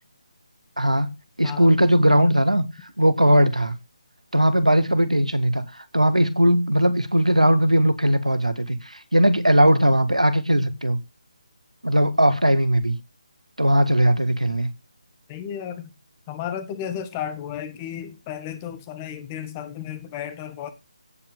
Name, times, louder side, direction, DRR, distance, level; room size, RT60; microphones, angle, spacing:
voice 1, 0.8-1.1 1.4-2.6 3.0-3.8 4.3-11.0 11.8-13.0 13.6-14.7, right 1 dB, 90° right, 1.7 m, -19 dB
voice 2, 1.4-1.8 15.3-15.9 16.3-20.7, left 9 dB, 20° left, 1.4 m, -33 dB
16.5 x 6.0 x 3.7 m
figure-of-eight pair, 150°, 3 cm